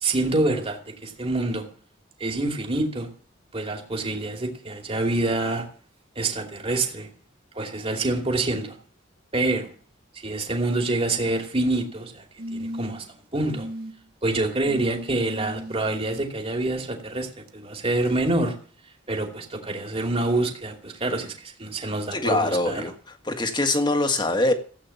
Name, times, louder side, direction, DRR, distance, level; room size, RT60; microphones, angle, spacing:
voice 1, 0.0-1.7 2.2-3.1 3.5-5.6 6.1-7.1 7.5-8.8 9.3-9.7 10.2-12.2 12.5-13.7 14.2-18.5 19.1-22.8, right 2 dB, 30° right, 2.7 m, -26 dB
sound 1, 11.1-11.7 12.4-13.1 13.5-13.9 14.6-16.2 17.5-17.6, equal, 50° right, 1.3 m, -37 dB
voice 2, 22.1-22.9 23.2-24.5, left 2 dB, 25° left, 1.7 m, -23 dB
15.5 x 8.7 x 7.1 m
head